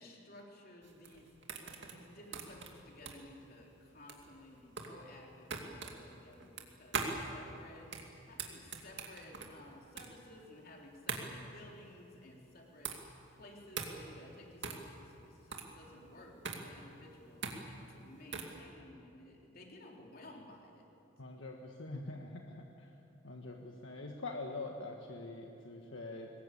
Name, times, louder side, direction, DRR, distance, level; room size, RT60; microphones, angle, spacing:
voice 1, 0.0-20.9, left 1 dB, 45° left, -1 dB, 3.7 m, -55 dB
sound 1, 0.8-18.6, right 4 dB, 55° right, 2.5 m, -43 dB
voice 2, 21.2-22.9 23.2-26.3, left 2 dB, 70° left, 1 dB, 1.6 m, -44 dB
23.5 x 20.5 x 8.5 m, 2.8 s
head